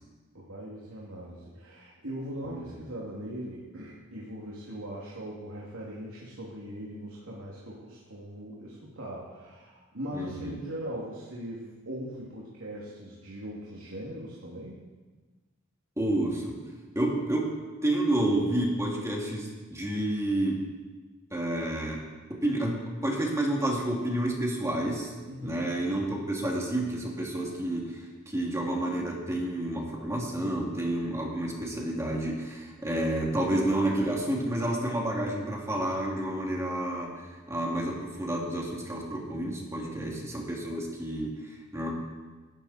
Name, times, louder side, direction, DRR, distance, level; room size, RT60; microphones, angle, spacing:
voice 1, 0.3-14.8 25.3-25.7 39.8-40.4, equal, 90° right, -5 dB, 2.9 m, -40 dB
voice 2, 10.1-10.6 16.0-16.6 16.9-17.5 17.8-20.6 21.3-22.0 22.3-25.1 25.4-41.9, right 1 dB, 15° right, -2 dB, 2.9 m, -30 dB
19.5 x 12.5 x 4.4 m, 1.3 s
head